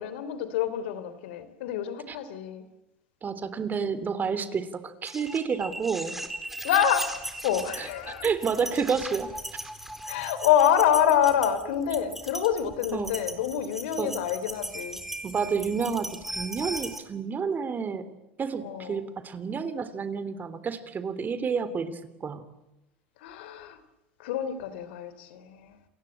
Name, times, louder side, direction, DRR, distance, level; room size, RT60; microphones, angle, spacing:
voice 1, 0.0-2.6 6.6-8.3 10.1-15.0 18.6-19.1 23.2-23.8 24.2-25.8, left 9 dB, 75° left, 13 dB, 3.3 m, -27 dB
voice 2, 3.2-6.2 7.8-7.9 8.2-9.3 12.9-13.1 14.0-14.2 15.2-18.1 18.4-22.5, right 6 dB, 30° right, 13 dB, 3.3 m, -30 dB
sound 1, 5.1-17.0, right 1 dB, 5° right, 4.1 m, -38 dB
29.5 x 21.0 x 8.8 m, 0.95 s
hypercardioid pair, 90°, 6 cm